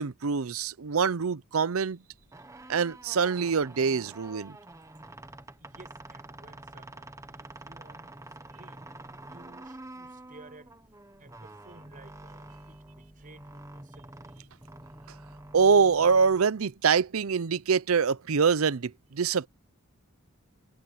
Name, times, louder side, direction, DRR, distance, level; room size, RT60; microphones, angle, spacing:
voice 1, 0.0-2.0 2.7-4.6 15.5-19.5, right 5 dB, 90° right, 0.6 m, -25 dB
sound 1, 2.2-16.8, right 2 dB, 15° right, 1.2 m, -47 dB
voice 2, 5.6-8.1 8.5-8.9 9.3-10.7 11.2-14.2, right 2 dB, 40° right, 5.8 m, -54 dB
head